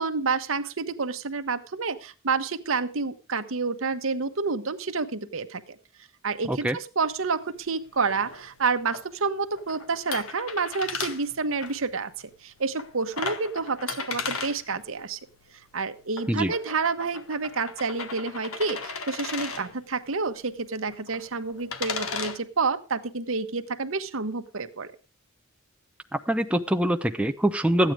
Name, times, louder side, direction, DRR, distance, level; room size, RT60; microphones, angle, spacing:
voice 1, 0.0-5.6 6.2-15.2 15.7-24.9, right 4 dB, 70° right, 9 dB, 1.0 m, -29 dB
sound 1, 7.1-22.4, left 5 dB, 90° left, 1.5 m, -38 dB
voice 2, 26.1-27.9, right 1 dB, 5° right, 7 dB, 0.5 m, -24 dB
13.5 x 9.1 x 4.8 m, 0.35 s
head